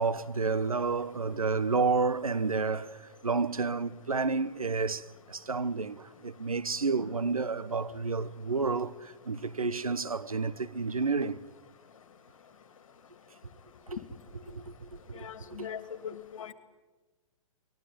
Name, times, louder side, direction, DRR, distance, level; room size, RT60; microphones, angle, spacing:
voice 1, 0.0-11.4 13.9-14.0 14.5-15.7, right 4 dB, 90° right, 1.1 m, -30 dB
voice 2, 15.1-16.5, left 8 dB, 70° left, 2.3 m, -41 dB
24.0 x 20.5 x 9.5 m
figure-of-eight pair, 115°, 18 cm